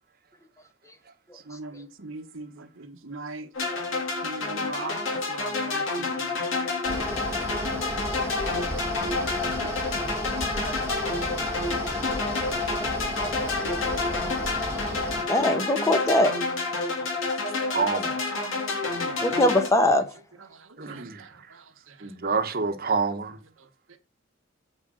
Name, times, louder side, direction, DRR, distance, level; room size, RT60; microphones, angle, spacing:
voice 1, 1.5-3.5 4.2-6.5 7.2-8.4 9.4-9.7 10.2-11.2 12.8-12.9 13.2-14.4 14.7-15.0 17.0-17.1 18.3-19.4 20.5-22.0 23.9-24.0, right 3 dB, 75° right, 1.3 m, -42 dB
sound 1, 3.5-19.7, left 3 dB, 70° left, 3.1 m, -29 dB
Mechanical fan, 6.9-15.2, equal, 15° right, 1.5 m, -33 dB
voice 2, 15.3-16.3 19.2-20.0, left 1 dB, 15° left, 1.0 m, -21 dB
voice 3, 17.7-18.2 20.8-21.2 22.0-23.4, right 4 dB, 50° right, 1.2 m, -27 dB
8.8 x 5.0 x 6.2 m
head